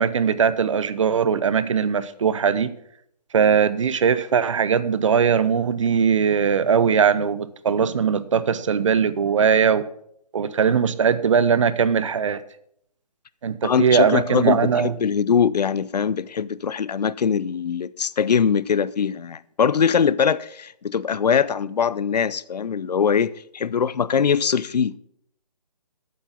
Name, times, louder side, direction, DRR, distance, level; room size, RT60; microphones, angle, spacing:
voice 1, 0.0-2.7 3.3-9.8 10.3-12.4 13.4-14.9, right 6 dB, 50° right, 0.7 m, -20 dB
voice 2, 13.6-25.0, left 7 dB, 80° left, 0.5 m, -22 dB
8.6 x 7.8 x 6.0 m
hypercardioid pair, 160°, 21 cm